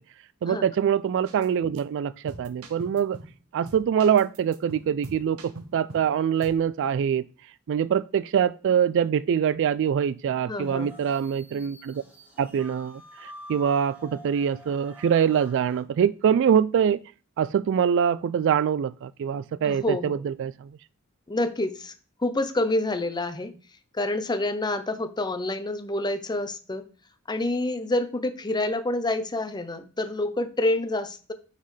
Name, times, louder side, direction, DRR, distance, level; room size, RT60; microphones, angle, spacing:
voice 1, 0.4-3.2 3.5-7.3 7.7-12.0 12.4-13.0 13.5-17.0 17.4-20.7, right 8 dB, 60° right, 0.3 m, -24 dB
sound 1, 1.3-1.5 1.8-1.9 2.3-3.4 3.7-6.1 6.4-6.7, right 2 dB, 85° right, 0.9 m, -43 dB
voice 2, 10.5-10.9 19.6-20.2 21.3-21.9 22.2-23.5 23.9-26.8 27.3-31.3, left 2 dB, 20° left, 0.6 m, -27 dB
sound 2, 10.6-15.8, left 1 dB, 10° right, 1.4 m, -47 dB
9.4 x 4.0 x 3.2 m
head